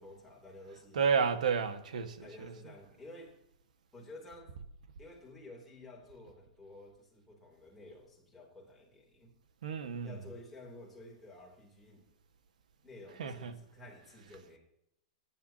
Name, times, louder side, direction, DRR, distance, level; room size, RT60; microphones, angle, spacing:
voice 1, 0.0-1.1 2.2-3.4 3.9-4.5 5.0-9.3 10.0-12.1 12.8-14.6, left 1 dB, 5° left, 3.2 m, -52 dB
voice 2, 0.9-2.5 9.6-10.2 13.2-13.5, right 6 dB, 90° right, 1.7 m, -31 dB
29.5 x 10.5 x 2.9 m
supercardioid pair, 175°, 4 cm